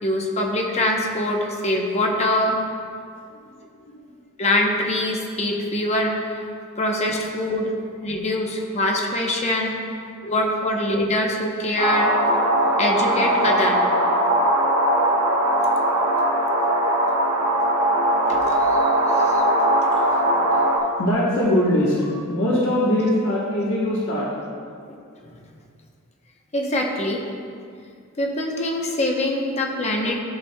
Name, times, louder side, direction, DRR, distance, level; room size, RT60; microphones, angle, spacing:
voice 1, 0.0-2.6 4.4-6.3 6.8-7.8 8.0-9.8 10.2-12.1 12.8-13.8 18.3-19.4 26.5-27.2 28.2-30.2, left 1 dB, 30° left, 0 dB, 0.8 m, -24 dB
sound 1, 11.8-20.8, right 1 dB, 90° right, 1.3 m, -20 dB
voice 2, 20.1-20.5 20.9-24.3, left 1 dB, 60° left, -6 dB, 1.1 m, -22 dB
12.5 x 6.0 x 2.2 m, 2.2 s
head